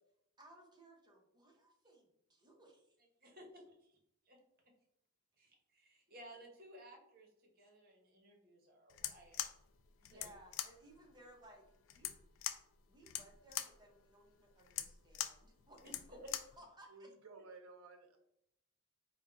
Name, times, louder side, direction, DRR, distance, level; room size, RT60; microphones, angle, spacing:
voice 1, 0.4-3.0 10.0-12.1 12.9-16.2 16.6-17.1, right 1 dB, 20° right, -1 dB, 0.9 m, -61 dB
voice 2, 3.2-4.0 4.2-4.4 4.6-4.7 5.4-9.5 10.1-10.3 15.8-16.3, right 1 dB, 45° right, 1 dB, 1.0 m, -57 dB
sound 1, 8.9-16.6, left 11 dB, 65° left, 0.3 m, -44 dB
voice 3, 16.9-18.2, right 3 dB, 80° right, 5 dB, 0.7 m, -55 dB
4.4 x 2.2 x 3.7 m, 0.77 s
head